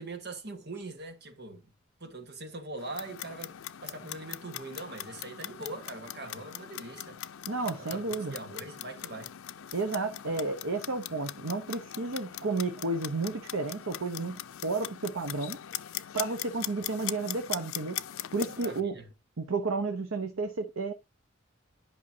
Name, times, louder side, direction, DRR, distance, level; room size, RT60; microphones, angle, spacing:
voice 1, 0.0-1.6 2.0-3.6 3.8-7.2 7.6-9.3 18.5-19.1, right 2 dB, 55° right, 1.7 m, -42 dB
Clock, 2.8-18.8, left 12 dB, 85° left, 0.5 m, -41 dB
voice 2, 7.5-8.3 9.7-15.6 16.1-18.0 18.3-19.0 19.4-20.9, right 3 dB, 85° right, 0.9 m, -32 dB
11.0 x 5.5 x 2.8 m
head